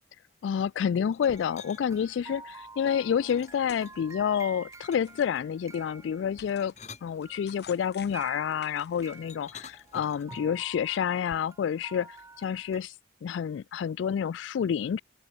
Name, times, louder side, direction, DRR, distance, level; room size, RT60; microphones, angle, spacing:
voice 1, 0.4-6.7 7.0-12.9 13.2-15.0, left 8 dB, 80° left, 0.3 m, -29 dB
sound 1, 1.0-11.4, left 6 dB, 60° left, 3.5 m, -54 dB
sound 2, 1.1-1.8 3.3-4.2 4.9-5.3 6.4-7.8 9.3-10.6, left 5 dB, 40° left, 7.0 m, -49 dB
sound 3, 1.2-7.0 7.2-12.8, right 3 dB, 15° right, 6.7 m, -49 dB
open air
head